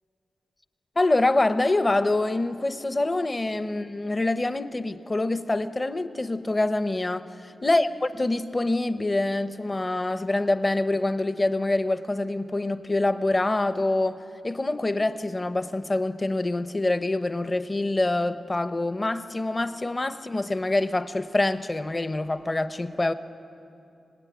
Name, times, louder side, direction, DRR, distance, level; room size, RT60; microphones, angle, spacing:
voice 1, 1.0-7.3 7.6-23.1, left 2 dB, 25° left, 11 dB, 0.8 m, -25 dB
25.5 x 19.5 x 9.3 m, 2.8 s
wide cardioid pair, 130°, 0 cm